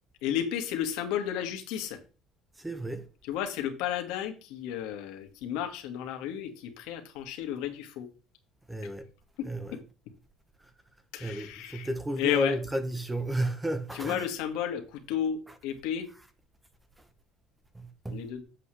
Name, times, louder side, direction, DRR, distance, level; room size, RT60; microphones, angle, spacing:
voice 1, 0.2-2.0 3.2-8.1 9.4-9.5 11.1-11.9 12.2-12.6 13.9-16.1 18.1-18.4, left 10 dB, 80° left, 1.7 m, -32 dB
voice 2, 2.6-3.1 8.7-9.1 9.4-9.8 11.2-14.3 15.5-15.6 17.7-18.3, right 1 dB, 5° right, 0.8 m, -33 dB
8.0 x 7.5 x 3.2 m
cardioid pair, 150°, 0 cm